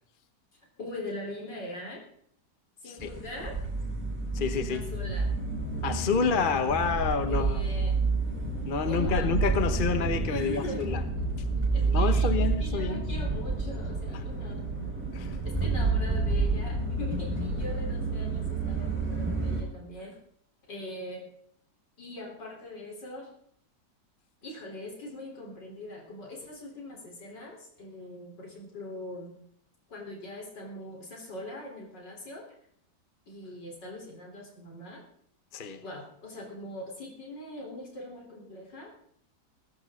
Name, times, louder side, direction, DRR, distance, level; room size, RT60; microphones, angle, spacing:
voice 1, 0.8-2.0 2.8-3.6 4.7-5.3 7.3-8.0 8.9-9.3 10.3-10.8 11.7-12.3 12.6-14.6 15.4-20.2 20.7-21.3 22.0-23.3 24.4-29.4 29.9-32.5 33.3-35.0 35.8-39.0, left 1 dB, 90° left, 0 dB, 4.5 m, -41 dB
sound 1, 3.0-19.6, right 3 dB, 5° right, 4.4 m, -29 dB
voice 2, 4.3-4.8 5.8-7.6 8.6-11.0 11.8-13.0 14.1-14.2 15.1-15.4 35.5-35.8, left 5 dB, 35° left, 9 dB, 1.0 m, -28 dB
19.0 x 15.0 x 3.8 m, 0.65 s
omnidirectional pair, 1.8 m